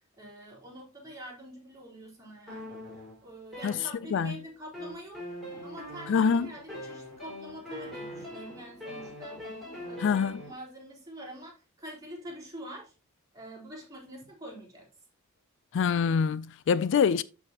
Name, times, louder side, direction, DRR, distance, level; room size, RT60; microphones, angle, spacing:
voice 1, 0.0-2.8 3.2-5.3 5.6-12.9 13.3-14.9, equal, 15° right, 3.8 m, -45 dB
sound 1, 2.5-4.3 4.7-10.5, left 1 dB, ahead, 4.8 m, -42 dB
voice 2, 6.1-6.5 10.0-10.4 15.7-17.2, left 6 dB, 60° left, 0.3 m, -25 dB
12.5 x 5.0 x 2.9 m
head